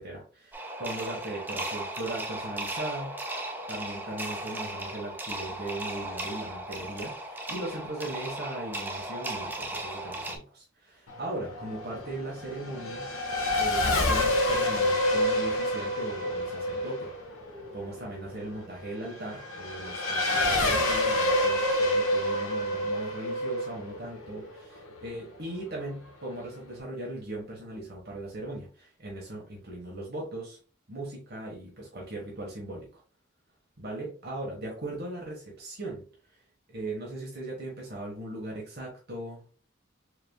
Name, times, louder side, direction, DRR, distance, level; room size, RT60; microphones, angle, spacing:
voice 1, 0.0-3.1 3.7-13.1 13.5-17.1 17.7-30.6 30.9-33.0 33.8-36.0 36.3-36.4 36.7-39.4, right 1 dB, 50° right, -3 dB, 1.3 m, -38 dB
sound 1, 0.5-10.4, right 1 dB, 10° right, 0.6 m, -36 dB
Race car auto racing / Accelerating revving vroom, 11.1-25.2, left 1 dB, 85° left, 1.1 m, -28 dB
4.7 x 3.5 x 2.2 m, 0.38 s
head